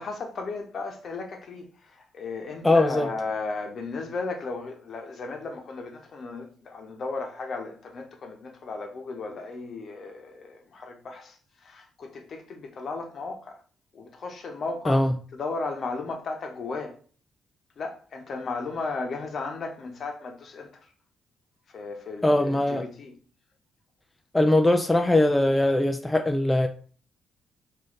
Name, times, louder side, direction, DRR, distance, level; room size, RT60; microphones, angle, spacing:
voice 1, 0.0-11.4 11.6-13.6 13.9-16.9 17.8-20.7 21.7-23.1, left 3 dB, 50° left, 0.8 m, -35 dB
voice 2, 2.6-3.1 14.9-15.1 22.2-22.8 24.3-26.7, left 1 dB, 10° left, 0.3 m, -21 dB
3.1 x 2.6 x 3.8 m
cardioid pair, 90°, 0 cm